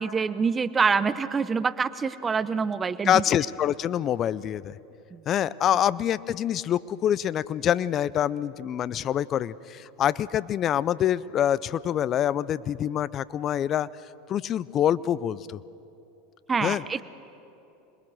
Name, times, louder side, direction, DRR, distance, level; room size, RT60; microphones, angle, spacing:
voice 1, 0.0-3.2 5.1-5.2 16.5-17.0, right 5 dB, 20° right, 14 dB, 0.8 m, -26 dB
voice 2, 3.1-4.7 5.3-13.9 14.3-15.6 16.6-16.8, left 10 dB, 40° left, 20 dB, 0.6 m, -25 dB
27.0 x 21.0 x 6.3 m, 2.9 s
hypercardioid pair, 95°, 0 cm